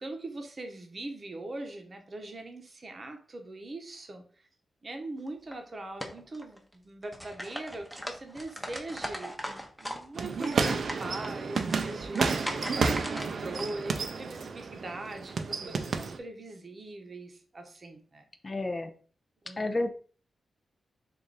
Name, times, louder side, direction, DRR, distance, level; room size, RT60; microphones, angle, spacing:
voice 1, 0.0-4.5 4.8-12.7 13.1-18.2 19.4-19.7, right 2 dB, 40° right, 4 dB, 0.8 m, -41 dB
sound 1, 5.3-5.6 6.0-6.7 7.0-10.0 10.3-13.7, equal, 5° right, 0.7 m, -39 dB
sound 2, 10.2-16.2, right 4 dB, 65° right, 0.4 m, -31 dB
voice 2, 18.4-18.9 19.6-19.9, left 2 dB, 35° left, 7 dB, 0.5 m, -30 dB
3.3 x 2.5 x 3.8 m, 0.43 s
cardioid pair, 70°, 0 cm